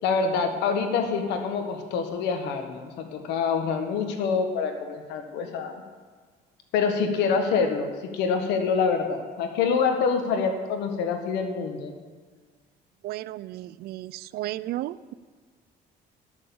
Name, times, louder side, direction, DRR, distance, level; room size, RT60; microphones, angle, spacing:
voice 1, 0.0-5.7 6.7-11.9, left 5 dB, 90° left, 6 dB, 1.3 m, -26 dB
voice 2, 13.0-15.1, right 15 dB, 70° right, 18 dB, 0.4 m, -34 dB
11.0 x 6.5 x 7.1 m, 1.5 s
cardioid pair, 110°, 17 cm